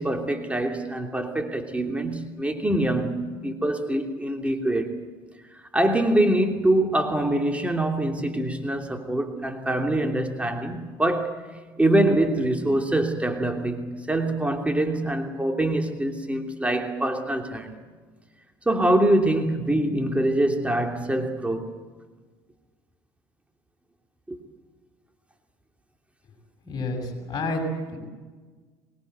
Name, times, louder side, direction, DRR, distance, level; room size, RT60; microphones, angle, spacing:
voice 1, 0.0-5.0 5.5-11.4 11.8-17.7 18.6-21.8 24.3-24.4, right 1 dB, 10° right, 4 dB, 3.0 m, -24 dB
voice 2, 26.7-27.6 27.9-28.0, left 3 dB, 35° left, 1 dB, 6.8 m, -29 dB
24.5 x 20.5 x 8.1 m, 1.4 s
hypercardioid pair, 70°, 12 cm